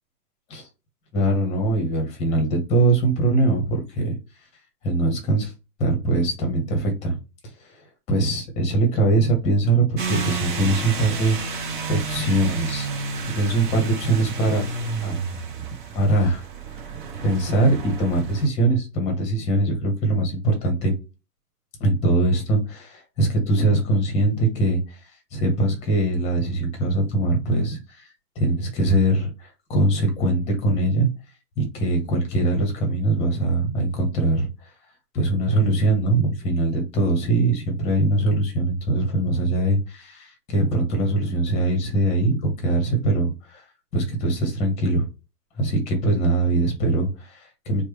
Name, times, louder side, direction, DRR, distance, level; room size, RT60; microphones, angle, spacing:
voice 1, 1.1-4.1 4.8-5.5 5.8-7.2 7.6-7.7 8.1-11.4 11.9-12.9 13.3-14.7 15.0-15.2 15.9-16.5 16.9-20.9 21.8-25.0 25.3-28.1 28.3-31.1 31.6-34.5 35.1-43.6 43.9-45.1 45.6-47.8, right 2 dB, 15° left, 3 dB, 0.9 m, -22 dB
sound 1, 10.0-18.5, right 4 dB, 35° right, 0.7 m, -31 dB
4.6 x 2.2 x 3.0 m, 0.29 s
figure-of-eight pair, 120°, 47 cm